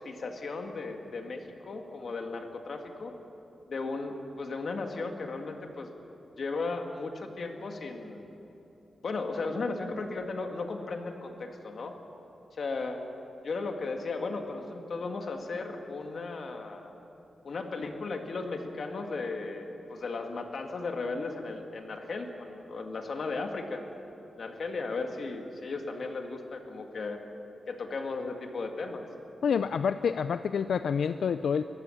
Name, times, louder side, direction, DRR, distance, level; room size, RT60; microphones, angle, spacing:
voice 1, 0.0-3.1 3.7-5.9 6.4-8.3 9.0-12.0 12.5-13.0 13.4-16.9 17.4-23.8 24.3-27.2 27.7-29.0, left 3 dB, 55° left, 4 dB, 2.0 m, -36 dB
voice 2, 29.4-31.6, left 6 dB, 85° left, 11 dB, 0.4 m, -28 dB
22.5 x 14.5 x 8.6 m, 2.9 s
wide cardioid pair, 155°, 0 cm